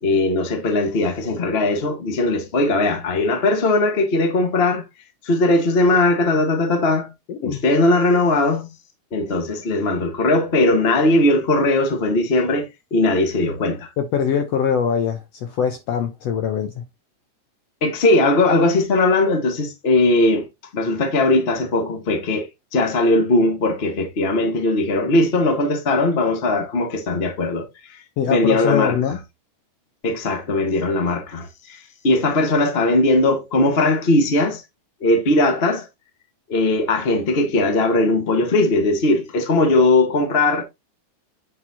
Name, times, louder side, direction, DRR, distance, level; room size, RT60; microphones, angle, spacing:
voice 1, 0.0-4.8 5.2-7.1 7.4-8.7 9.1-13.9 17.8-20.5 20.7-22.5 22.7-29.0 30.0-34.6 35.0-35.9 36.5-40.6, left 2 dB, 50° left, 0.7 m, -19 dB
voice 2, 7.3-7.6 14.0-16.8 28.2-29.2, left 8 dB, 70° left, 1.6 m, -22 dB
8.7 x 4.5 x 2.8 m
omnidirectional pair, 3.7 m